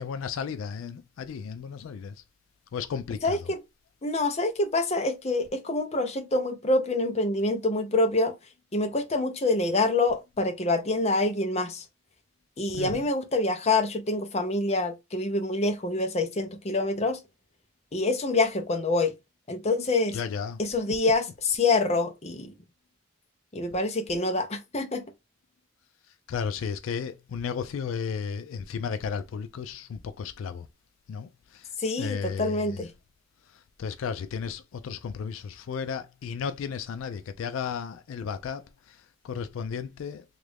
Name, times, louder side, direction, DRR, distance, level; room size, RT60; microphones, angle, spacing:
voice 1, 0.0-2.2 2.7-3.5 12.7-13.1 20.1-20.6 20.9-21.0 26.3-30.7 31.1-31.7 32.0-32.9 33.5-40.2, left 6 dB, 80° left, 0.3 m, -34 dB
voice 2, 3.2-3.6 4.0-8.3 8.7-11.8 12.6-17.2 17.9-19.1 19.5-20.2 20.6-22.5 23.5-25.0 31.8-32.9, left 2 dB, 30° left, 0.6 m, -26 dB
3.0 x 2.4 x 3.3 m
head